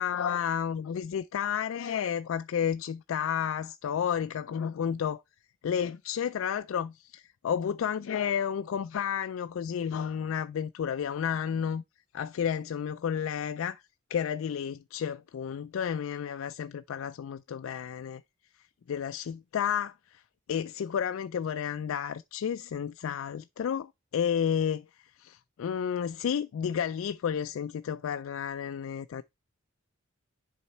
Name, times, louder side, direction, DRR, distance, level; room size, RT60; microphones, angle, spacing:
voice 1, 0.0-5.2 5.6-11.8 12.1-13.8 14.1-18.2 18.9-20.2 20.5-29.2, left 8 dB, 70° left, 0.3 m, -31 dB
7.1 x 4.1 x 4.3 m
head